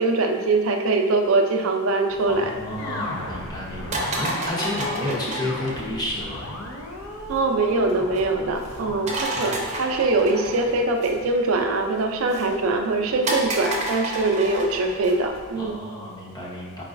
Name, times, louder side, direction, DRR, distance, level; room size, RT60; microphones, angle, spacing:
voice 1, 0.0-2.5 7.3-15.8, right 3 dB, 75° right, 4 dB, 0.4 m, -22 dB
sound 1, 2.1-15.7, right 1 dB, 30° right, 0.6 m, -33 dB
voice 2, 2.3-6.4 8.8-9.6 15.6-16.8, left 1 dB, 20° left, -5 dB, 0.7 m, -31 dB
sound 2, 2.8-12.1, left 1 dB, 70° left, 0.6 m, -37 dB
4.7 x 3.8 x 2.5 m, 1.5 s
head